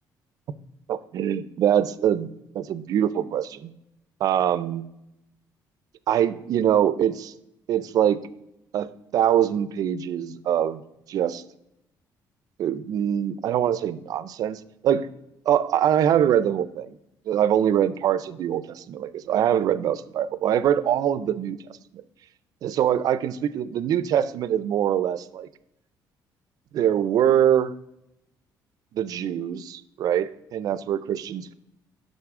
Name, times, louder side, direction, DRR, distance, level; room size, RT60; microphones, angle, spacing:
voice 1, 0.9-3.7 4.2-4.9 6.1-7.3 7.7-8.2 8.7-10.8 11.1-11.4 12.6-15.1 15.5-17.0 17.3-21.8 22.6-25.5 26.7-27.7 28.9-31.5, right 10 dB, 60° right, 16 dB, 0.4 m, -23 dB
10.5 x 3.9 x 3.6 m, 0.84 s
cardioid pair, 140°, 7 cm